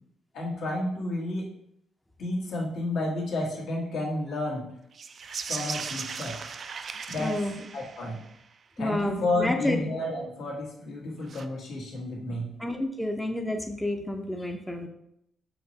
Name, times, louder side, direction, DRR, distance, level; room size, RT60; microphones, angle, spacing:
voice 1, 0.3-1.5 2.2-4.6 5.5-6.3 7.1-7.3 7.7-8.2 8.8-12.5, left 2 dB, 75° left, -3 dB, 1.6 m, -31 dB
sound 1, 4.9-8.4 11.2-11.5, right 5 dB, 50° right, 0.3 m, -37 dB
voice 2, 7.2-7.5 8.8-9.8 12.6-14.9, left 1 dB, 5° left, 3 dB, 0.5 m, -30 dB
5.7 x 3.1 x 2.8 m, 0.75 s
cardioid pair, 90°, 0 cm